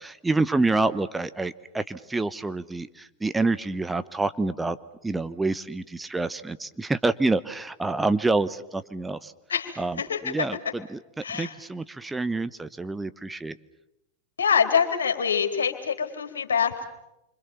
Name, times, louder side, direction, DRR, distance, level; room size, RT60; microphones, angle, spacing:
voice 1, 0.0-4.8 5.0-9.3 9.8-13.6, right 3 dB, 10° right, 13 dB, 1.0 m, -27 dB
voice 2, 9.5-10.3 11.2-11.5 14.4-16.8, left 7 dB, 70° left, 6 dB, 3.5 m, -25 dB
27.5 x 25.5 x 7.1 m, 0.86 s
figure-of-eight pair, 90°, 0 cm